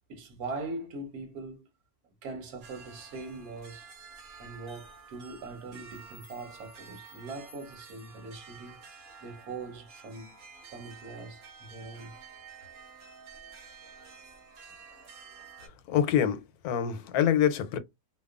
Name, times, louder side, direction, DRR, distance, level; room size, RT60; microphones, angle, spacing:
voice 1, 0.1-1.7 2.2-3.9 4.4-10.3 10.7-12.1, right 3 dB, 90° right, 1.4 m, -41 dB
sound 1, 2.6-15.7, right 5 dB, 70° right, 1.5 m, -50 dB
voice 2, 15.6-17.8, left 9 dB, 85° left, 1.1 m, -26 dB
2.9 x 2.2 x 2.3 m
omnidirectional pair, 1.5 m